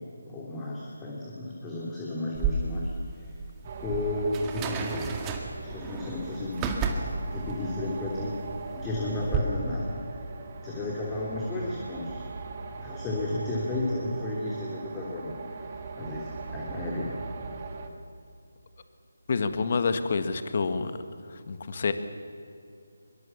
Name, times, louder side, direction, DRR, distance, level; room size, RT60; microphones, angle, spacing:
voice 1, 0.0-2.9 3.1-3.3 3.8-5.1 5.6-7.1 7.3-8.3 8.7-9.9 10.6-12.2 12.7-17.2, left 2 dB, 15° left, -4 dB, 3.3 m, -33 dB
sound 1, 2.3-9.4, right 5 dB, 15° right, 2.0 m, -33 dB
sound 2, 3.6-17.9, right 4 dB, 35° right, 2.3 m, -40 dB
voice 2, 19.3-20.9 21.3-21.9, left 4 dB, 45° left, 10 dB, 1.8 m, -27 dB
24.0 x 23.0 x 7.2 m, 2.6 s
figure-of-eight pair, 160°, 0 cm